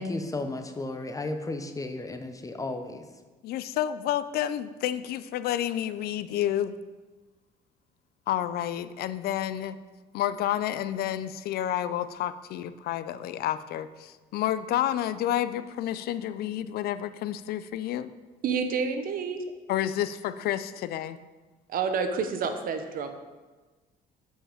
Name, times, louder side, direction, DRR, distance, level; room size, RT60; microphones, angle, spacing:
voice 1, 0.0-3.1, left 2 dB, 20° left, 7 dB, 0.6 m, -34 dB
voice 2, 3.4-6.7 8.3-9.8 10.1-18.1 19.7-21.2, left 11 dB, 65° left, 13 dB, 0.4 m, -30 dB
voice 3, 18.4-19.4 21.7-23.1, right 5 dB, 55° right, 7 dB, 0.9 m, -28 dB
7.5 x 5.2 x 4.9 m, 1.3 s
cardioid pair, 110°, 17 cm